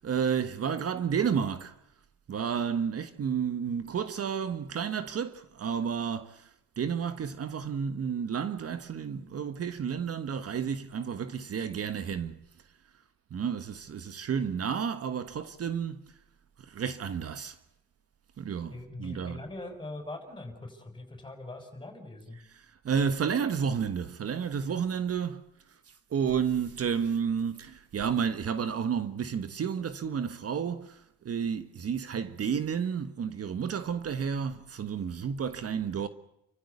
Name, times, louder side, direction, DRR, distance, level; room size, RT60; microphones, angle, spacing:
voice 1, 0.0-1.7 2.3-6.5 6.8-12.5 13.3-16.1 16.6-17.6 18.4-19.5 22.4-25.4 25.9-36.1, right 7 dB, 50° right, 1.5 m, -31 dB
voice 2, 18.7-22.4, left 2 dB, 15° left, 6.7 m, -42 dB
29.0 x 15.0 x 8.3 m
cardioid pair, 90°, 30 cm